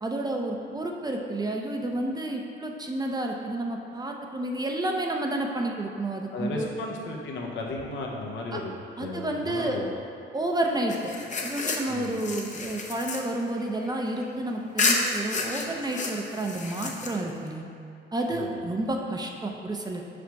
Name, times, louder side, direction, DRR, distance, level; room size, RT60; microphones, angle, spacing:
voice 1, 0.0-6.7 8.5-8.6 9.0-9.8 10.3-11.1 11.4-17.6 18.1-20.1, right 1 dB, 20° right, 1 dB, 0.6 m, -30 dB
voice 2, 6.3-8.7 9.0-9.9 11.9-12.2 18.3-18.5, left 2 dB, 70° left, -1 dB, 1.0 m, -34 dB
sound 1, 10.9-14.3 14.8-17.5, left 3 dB, 40° left, 0.7 m, -31 dB
5.0 x 5.0 x 4.6 m, 2.6 s
cardioid pair, 90°, 20 cm